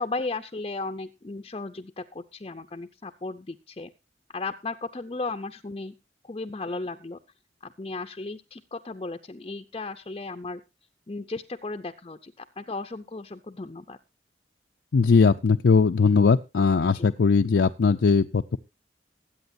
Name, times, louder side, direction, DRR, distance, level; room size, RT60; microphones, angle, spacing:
voice 1, 0.0-3.9 4.3-5.9 6.2-7.2 7.6-10.6 11.1-14.0 16.8-17.1, left 3 dB, 30° left, 6 dB, 0.5 m, -35 dB
voice 2, 14.9-18.6, left 5 dB, 80° left, 5 dB, 0.5 m, -20 dB
21.5 x 8.8 x 2.6 m, 0.27 s
head